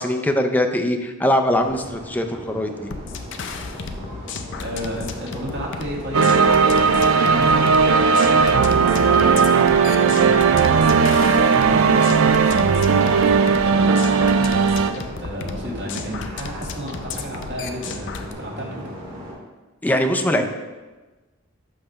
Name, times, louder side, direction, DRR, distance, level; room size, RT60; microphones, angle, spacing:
voice 1, 0.0-2.9 19.8-20.4, left 1 dB, 10° left, 4 dB, 0.5 m, -21 dB
sound 1, 1.5-19.3, equal, 35° right, 2.3 m, -38 dB
sound 2, 2.9-18.3, left 4 dB, 65° left, 0.5 m, -34 dB
voice 2, 4.2-9.4 11.5-18.9 20.2-20.4, equal, 60° right, -4 dB, 1.9 m, -32 dB
sound 3, 6.1-14.9, right 5 dB, 80° right, 0.4 m, -16 dB
7.5 x 3.3 x 5.6 m, 1.2 s
head